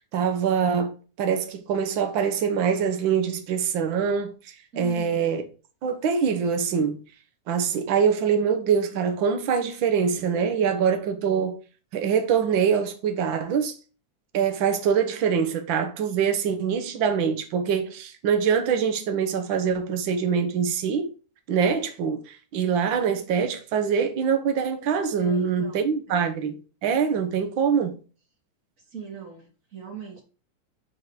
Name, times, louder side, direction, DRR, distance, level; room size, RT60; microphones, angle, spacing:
voice 1, 0.0-5.4 5.8-7.0 7.5-11.6 11.9-13.8 14.3-21.1 21.5-26.5 26.8-28.0, right 7 dB, 55° right, 1.4 m, -24 dB
voice 2, 4.7-5.3 25.2-26.3 28.9-30.2, right 3 dB, 35° right, 1.4 m, -40 dB
8.1 x 3.8 x 4.8 m
omnidirectional pair, 3.3 m